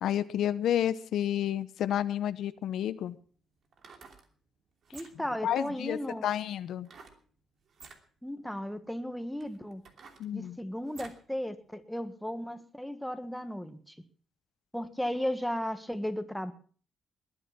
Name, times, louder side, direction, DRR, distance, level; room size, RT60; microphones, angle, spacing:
voice 1, 0.0-3.2 5.4-6.9 10.2-10.6, left 11 dB, 75° left, 13 dB, 0.8 m, -30 dB
sound 1, 3.6-4.3 4.8-5.4 6.8-7.2 7.7-8.0 8.7-8.8 9.4-11.3 11.7-11.8, right 5 dB, 55° right, 2.9 m, -52 dB
voice 2, 4.9-6.3 8.2-9.8 10.3-14.0 14.7-16.5, equal, ahead, 8 dB, 1.7 m, -35 dB
20.5 x 10.0 x 6.0 m, 0.44 s
cardioid pair, 90°, 0 cm